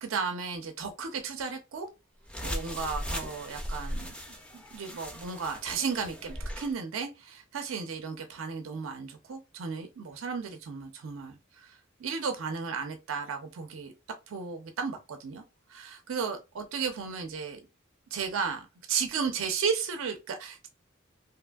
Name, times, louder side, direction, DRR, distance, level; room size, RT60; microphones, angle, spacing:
voice 1, 0.0-1.9 2.4-13.9 14.3-15.4 15.7-17.6 18.1-20.7, right 5 dB, 75° right, 0.4 m, -34 dB
sound 1, 2.3-6.7, equal, 5° left, 0.4 m, -38 dB
2.8 x 2.5 x 2.2 m
head